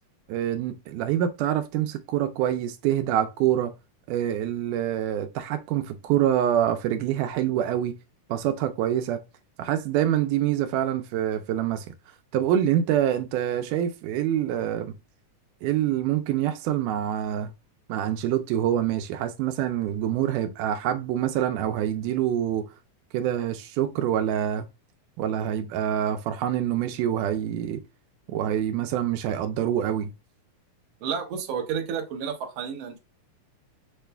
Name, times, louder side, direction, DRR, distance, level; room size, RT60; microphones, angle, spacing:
voice 1, 0.3-3.7 4.1-8.0 8.3-9.2 9.6-11.9 12.3-14.9 15.6-17.5 17.9-22.7 23.1-24.7 25.2-27.8 28.3-30.1, right 11 dB, 85° right, 2.1 m, -26 dB
voice 2, 31.0-33.0, right 7 dB, 70° right, 1.6 m, -31 dB
6.6 x 2.2 x 3.2 m
omnidirectional pair, 3.6 m